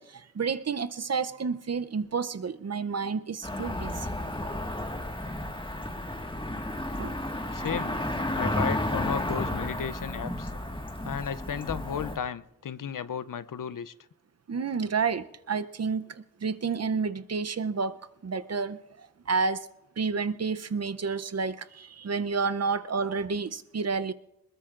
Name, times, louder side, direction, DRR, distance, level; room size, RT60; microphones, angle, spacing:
voice 1, 0.0-4.1 7.0-7.2 7.6-7.7 14.5-19.7 20.0-24.1, right 5 dB, 45° right, 0.6 m, -30 dB
Cricket / Motor vehicle (road), 3.4-12.2, left 1 dB, 15° left, 1.6 m, -32 dB
voice 2, 7.5-8.0 8.4-10.5 11.0-13.9, left 8 dB, 65° left, 0.5 m, -34 dB
22.0 x 20.5 x 2.5 m
cardioid pair, 40°, 35 cm